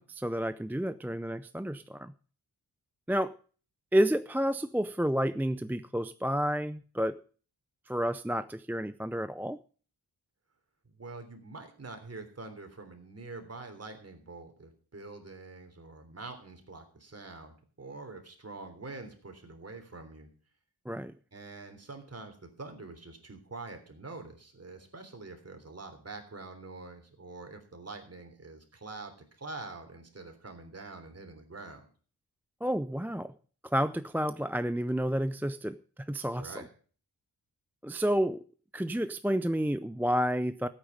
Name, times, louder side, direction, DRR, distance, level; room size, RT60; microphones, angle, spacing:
voice 1, 0.0-2.1 3.1-3.3 3.9-7.2 7.9-9.6 20.9-21.1 32.6-33.3 33.6-35.8 36.1-36.6 37.8-38.4 38.7-40.7, equal, 5° right, 12 dB, 0.5 m, -30 dB
voice 2, 10.9-20.3 21.3-31.9 36.3-36.7, right 3 dB, 40° right, 6 dB, 3.5 m, -45 dB
15.0 x 8.8 x 5.2 m, 0.40 s
wide cardioid pair, 105°, 39 cm